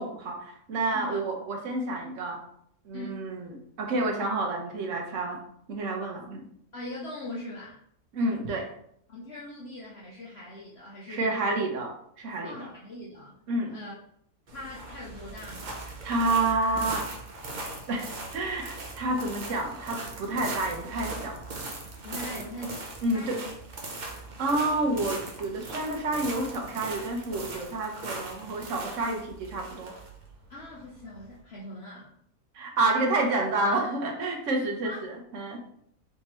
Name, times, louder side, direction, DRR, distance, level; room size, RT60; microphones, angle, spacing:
voice 1, 0.0-2.5 2.8-5.4 5.7-6.4 8.1-8.7 11.1-12.7 13.5-13.7 16.0-17.1 17.9-21.4 22.3-22.4 23.0-23.4 24.1-29.9 32.5-35.6, right 2 dB, 60° right, 1 dB, 1.2 m, -29 dB
voice 2, 2.9-3.2 6.7-7.8 9.1-11.6 12.4-13.4 13.7-13.9 14.5-15.8 22.0-22.8 23.1-23.5 28.4-28.5 30.5-32.1 33.0-33.1 34.8-35.0, left 1 dB, 50° left, -5 dB, 0.9 m, -41 dB
sound 1, 14.5-31.4, right 2 dB, 45° right, 0.7 m, -40 dB
4.4 x 3.5 x 3.0 m, 0.68 s
omnidirectional pair, 1.6 m